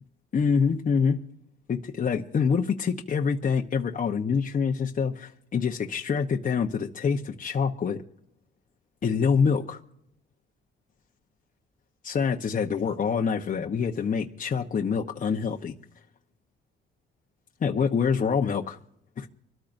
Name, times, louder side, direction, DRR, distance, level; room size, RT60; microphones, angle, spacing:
voice 1, 0.3-1.2 1.7-8.0 9.0-9.8 12.0-15.7 17.6-18.8 19.2-19.3, left 6 dB, 40° left, 1 dB, 1.0 m, -26 dB
26.0 x 13.5 x 2.7 m, 0.77 s
cardioid pair, 90°, 20 cm